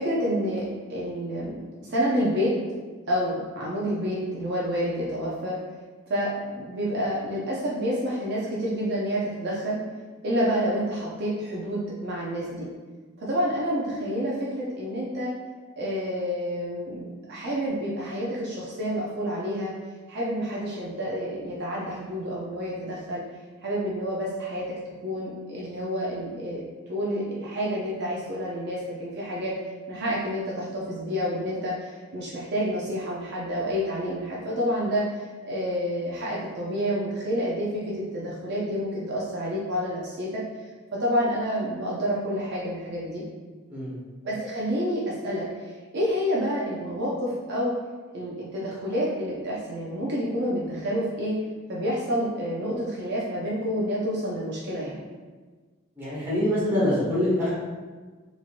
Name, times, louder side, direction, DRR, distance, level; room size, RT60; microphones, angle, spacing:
voice 1, 0.0-2.5 3.1-5.6 6.1-9.8 10.2-12.7 13.2-15.3 15.8-19.7 20.1-23.2 23.6-26.6 26.9-29.5 29.9-40.4 40.9-43.2 44.2-47.7 48.1-51.4 51.7-55.0, equal, 50° right, -5 dB, 0.5 m, -29 dB
voice 2, 56.0-57.5, left 1 dB, 10° right, -9 dB, 1.0 m, -24 dB
3.0 x 2.7 x 2.4 m, 1.4 s
head